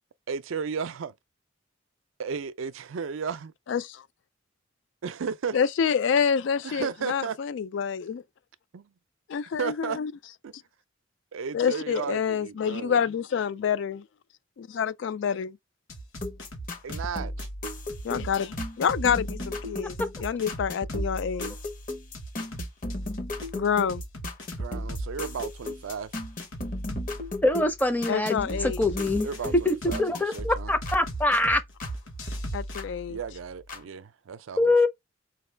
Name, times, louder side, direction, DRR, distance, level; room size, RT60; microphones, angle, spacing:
voice 1, 0.3-1.1 2.2-3.5 5.0-5.6 6.6-7.4 8.7-8.9 9.6-10.0 10.4-10.5 11.3-13.0 16.8-17.5 24.6-26.1 29.2-30.7 33.1-34.9, right 6 dB, 85° right, 0.4 m, -34 dB
voice 2, 3.7-4.0 5.5-8.2 9.3-10.1 11.5-14.1 14.6-15.6 18.0-21.5 23.5-24.0 28.1-28.8 32.5-33.2, left 7 dB, 65° left, 0.3 m, -27 dB
sound 1, 15.9-17.1 17.4-21.1 21.4-25.1 25.4-27.2 28.8-30.4 30.8-32.8, right 2 dB, 85° left, 1.4 m, -37 dB
sound 2, 16.2-32.0 32.3-33.8, left 1 dB, 45° left, 0.8 m, -36 dB
voice 3, 27.4-29.3 29.7-31.6 34.6-34.9, left 2 dB, 10° left, 0.5 m, -24 dB
4.6 x 2.3 x 3.2 m
head